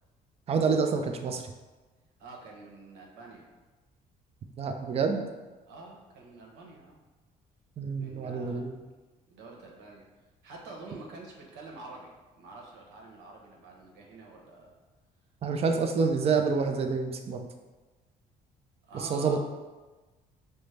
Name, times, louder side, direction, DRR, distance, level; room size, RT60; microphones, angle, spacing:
voice 1, 0.5-1.5 4.6-5.2 7.8-8.8 15.4-17.5 18.9-19.4, right 5 dB, 35° right, 5 dB, 0.4 m, -28 dB
voice 2, 2.2-3.4 5.7-7.0 7.9-8.7 9.3-12.1 12.4-14.7 18.9-19.4, right 2 dB, 85° right, -1 dB, 0.9 m, -47 dB
5.4 x 2.1 x 3.2 m, 1.2 s
cardioid pair, 110°, 17 cm